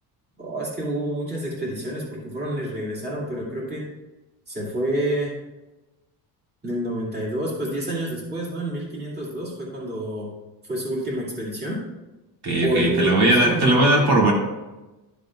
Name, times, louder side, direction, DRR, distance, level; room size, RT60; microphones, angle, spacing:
voice 1, 0.4-3.9 4.5-5.4 6.6-10.3 10.6-11.8 12.6-13.8, right 1 dB, 25° right, -5 dB, 2.3 m, -28 dB
voice 2, 12.4-14.3, right 1 dB, 75° right, -3 dB, 2.6 m, -18 dB
12.0 x 6.8 x 2.4 m, 1.1 s
cardioid pair, 160°, 39 cm